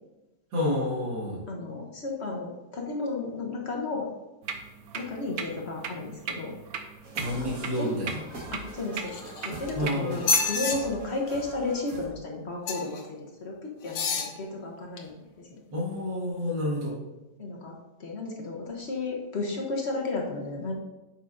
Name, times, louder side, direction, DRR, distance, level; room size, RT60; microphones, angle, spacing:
voice 1, 0.5-1.4 7.2-8.2 9.8-10.2 15.7-17.0, left 1 dB, 85° right, -5 dB, 2.4 m, -29 dB
voice 2, 1.5-4.1 4.9-6.5 7.3-7.5 7.8-8.0 8.5-9.2 9.4-13.0 13.4-15.1 15.5-15.6 17.4-17.7 18.0-20.7, left 3 dB, 45° left, 0 dB, 1.0 m, -33 dB
sound 1, 4.4-10.5, right 6 dB, 65° right, 1.0 m, -39 dB
sound 2, 7.0-12.0, right 1 dB, 50° right, 2.0 m, -42 dB
sound 3, 9.0-9.7 10.2-10.8 12.6-13.0 13.8-14.3 15.0-15.1, left 4 dB, 90° left, 1.6 m, -28 dB
8.7 x 5.7 x 2.6 m, 1.0 s
omnidirectional pair, 1.9 m